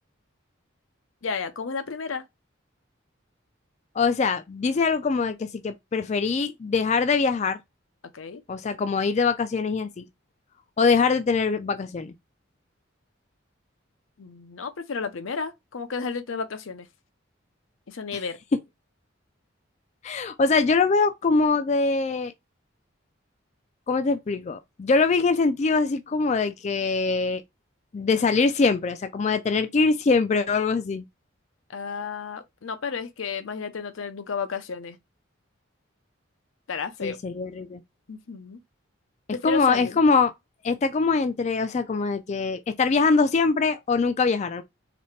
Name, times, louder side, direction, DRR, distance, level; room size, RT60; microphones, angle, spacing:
voice 1, 1.2-2.2 8.1-8.4 14.2-16.9 17.9-18.4 31.7-35.0 36.7-37.2 38.1-38.6 39.3-40.0, left 5 dB, 80° left, 0.6 m, -32 dB
voice 2, 4.0-7.6 8.5-10.0 10.8-12.1 20.0-22.3 23.9-27.4 27.9-31.0 37.0-37.8 39.4-40.3 40.6-44.6, left 4 dB, 35° left, 0.3 m, -23 dB
4.1 x 3.2 x 3.2 m
head